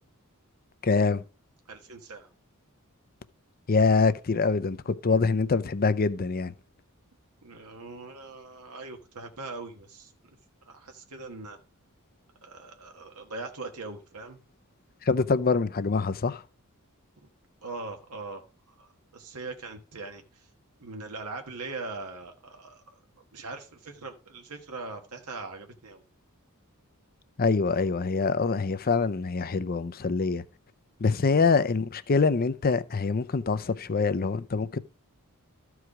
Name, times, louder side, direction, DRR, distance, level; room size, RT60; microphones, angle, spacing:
voice 1, 0.8-1.2 3.7-6.5 15.0-16.4 27.4-30.4 31.0-34.8, left 4 dB, 40° left, 0.6 m, -25 dB
voice 2, 1.7-2.3 7.4-10.1 10.7-11.6 12.4-14.4 17.6-18.4 18.8-20.5 20.8-23.0 23.3-26.0 31.3-31.4, right 3 dB, 90° right, 1.4 m, -41 dB
13.5 x 4.8 x 4.8 m
head